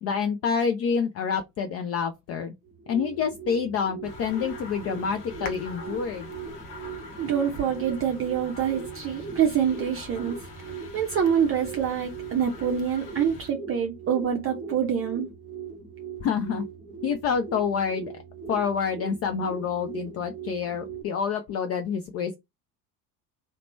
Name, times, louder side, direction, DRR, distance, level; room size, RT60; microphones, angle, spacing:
voice 1, 0.0-2.5 2.9-6.3 16.2-16.6 17.0-18.1 18.5-22.4, left 6 dB, 35° left, 0.4 m, -27 dB
sound 1, 2.6-21.0, right 6 dB, ahead, 0.8 m, -40 dB
sound 2, 4.0-13.5, left 3 dB, 70° left, 0.9 m, -43 dB
voice 2, 7.2-10.4 10.6-15.3, right 8 dB, 30° right, 0.6 m, -26 dB
2.9 x 2.1 x 3.0 m
figure-of-eight pair, 60°, 47 cm